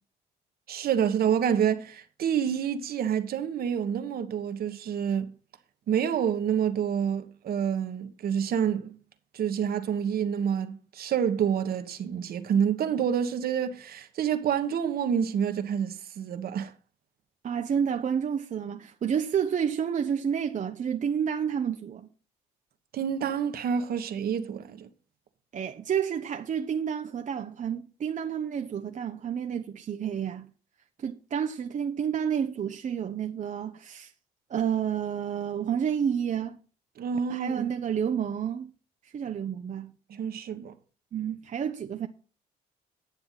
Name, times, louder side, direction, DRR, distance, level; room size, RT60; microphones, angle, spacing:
voice 1, 0.7-5.3 5.9-9.0 9.3-16.7 22.9-24.9 37.0-37.7 40.1-40.7, right 8 dB, 65° right, 1.4 m, -28 dB
voice 2, 17.4-22.1 25.5-30.5 31.0-34.1 34.5-36.6 37.3-38.7 39.1-39.9 41.1-42.1, right 8 dB, 50° right, 0.9 m, -30 dB
10.0 x 7.0 x 5.7 m
cardioid pair, 75°, 17 cm